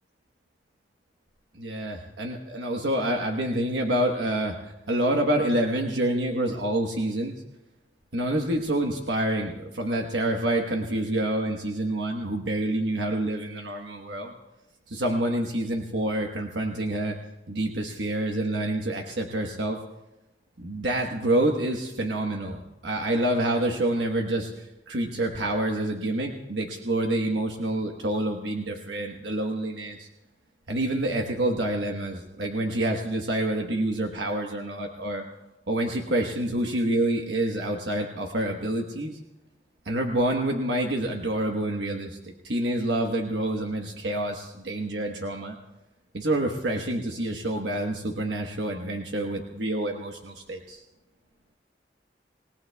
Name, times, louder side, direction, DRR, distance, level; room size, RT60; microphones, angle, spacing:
voice 1, 1.5-7.3 8.1-14.3 14.9-17.2 17.5-19.8 20.6-30.1 30.7-35.2 35.7-39.2 39.8-45.6 46.1-50.8, right 1 dB, 90° right, 2 dB, 1.2 m, -27 dB
27.5 x 18.0 x 2.3 m, 0.97 s
head